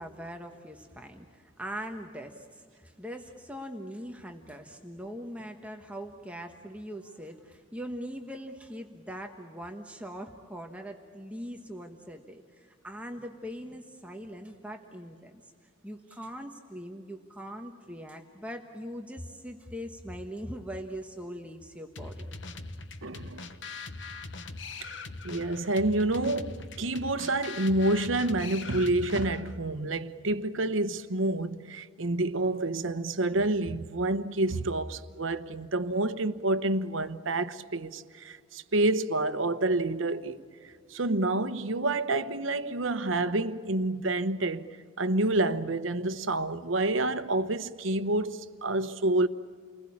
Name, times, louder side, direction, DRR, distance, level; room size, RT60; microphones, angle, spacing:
voice 1, 0.0-15.5 15.8-22.3, equal, 5° right, 1.2 m, -41 dB
sound 1, 22.0-29.6, left 3 dB, 60° left, 1.2 m, -41 dB
voice 2, 23.0-23.5 24.8-24.9 25.2-40.4 40.9-44.7 45.0-49.3, right 2 dB, 75° right, 1.1 m, -28 dB
30.0 x 21.0 x 8.6 m
head